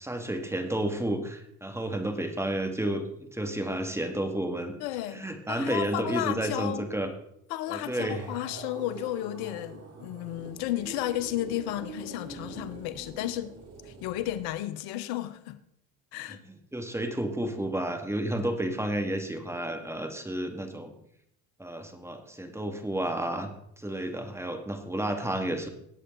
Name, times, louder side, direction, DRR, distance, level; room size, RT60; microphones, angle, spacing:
voice 1, 0.0-4.7 5.1-7.1 7.7-8.3 16.3-16.4 16.7-20.9 21.6-23.5 23.8-25.7, right 1 dB, 5° right, 2.0 m, -31 dB
voice 2, 4.8-6.8 7.5-13.5 13.8-15.6 16.1-16.4, left 14 dB, 70° left, 1.1 m, -33 dB
sound 1, 7.8-14.6, right 3 dB, 40° right, 3.3 m, -44 dB
18.5 x 8.0 x 3.9 m
supercardioid pair, 85°, 40 cm